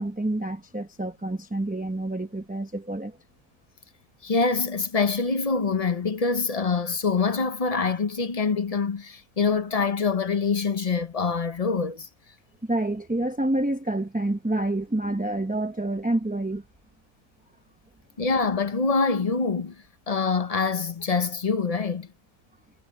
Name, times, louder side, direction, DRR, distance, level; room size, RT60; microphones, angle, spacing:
voice 1, 0.0-3.2 12.6-16.6, right 1 dB, 10° right, 0.5 m, -28 dB
voice 2, 4.2-12.1 18.2-19.7 20.1-22.1, left 4 dB, 35° left, 0.7 m, -25 dB
omnidirectional pair, 1.4 m